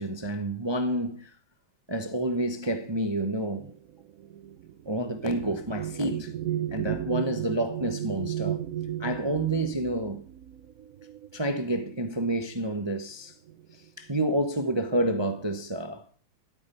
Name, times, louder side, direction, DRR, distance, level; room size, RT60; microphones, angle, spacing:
voice 1, 0.0-1.3 1.9-3.7 4.9-6.3 6.7-8.6 9.0-10.2 11.3-13.3 14.0-16.0, right 1 dB, 40° right, 0.3 m, -29 dB
sound 1, 3.0-11.9 12.8-13.0 13.3-13.9, right 11 dB, 70° right, 0.8 m, -35 dB
12.5 x 8.7 x 5.4 m
omnidirectional pair, 2.3 m